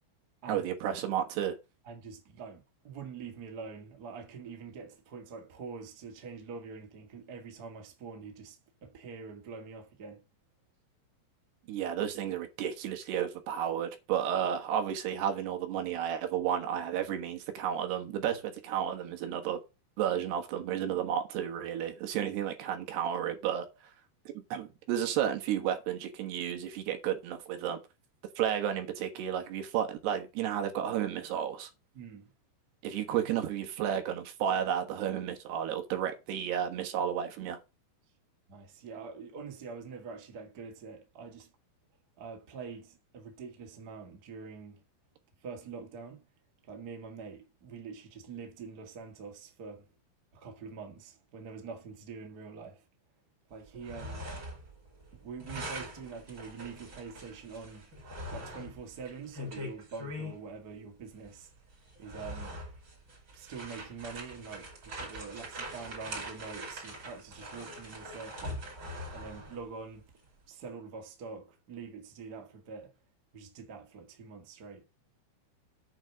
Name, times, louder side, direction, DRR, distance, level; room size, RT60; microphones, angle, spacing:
voice 1, 0.5-1.6 11.7-19.6 20.0-23.7 24.3-27.8 28.4-31.7 32.8-37.6, right 9 dB, 65° right, 3.2 m, -32 dB
voice 2, 1.8-10.2 31.9-32.3 38.5-41.5 42.2-44.8 45.4-46.3 46.7-49.9 50.3-52.8 53.5-54.3 55.2-57.8 58.3-61.5 62.0-62.6 63.3-68.6 69.1-70.0 70.5-72.9 73.3-74.8, right 5 dB, 90° right, 0.8 m, -45 dB
sound 1, 53.7-54.7 55.0-60.4 61.2-61.4 61.9-69.7, equal, 25° right, 4.9 m, -42 dB
9.0 x 5.2 x 5.9 m
omnidirectional pair, 5.5 m